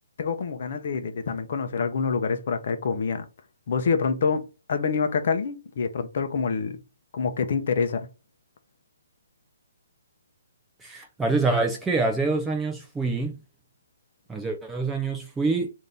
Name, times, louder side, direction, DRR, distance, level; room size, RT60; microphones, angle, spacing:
voice 1, 0.2-3.3 3.7-6.8 7.1-8.1, left 5 dB, 40° left, 0.6 m, -26 dB
voice 2, 10.8-13.4 14.3-15.7, right 3 dB, 5° right, 0.3 m, -26 dB
3.4 x 2.6 x 3.9 m
hypercardioid pair, 175°, 0 cm